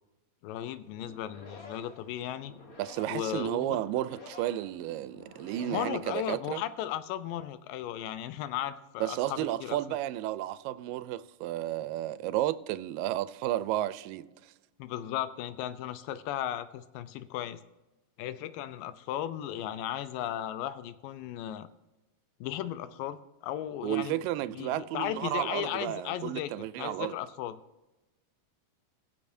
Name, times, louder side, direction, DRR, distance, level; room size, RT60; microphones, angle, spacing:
voice 1, 0.4-2.5 3.1-3.8 5.6-9.8 14.8-17.6 18.2-21.7 22.4-24.2 24.5-27.6, left 11 dB, 85° left, 2.3 m, -36 dB
sound 1, 1.0-6.7, left 2 dB, 65° left, 0.8 m, -51 dB
voice 2, 2.8-6.6 9.0-14.3 23.8-27.1, right 14 dB, 90° right, 2.3 m, -32 dB
21.0 x 7.1 x 2.6 m
omnidirectional pair, 3.9 m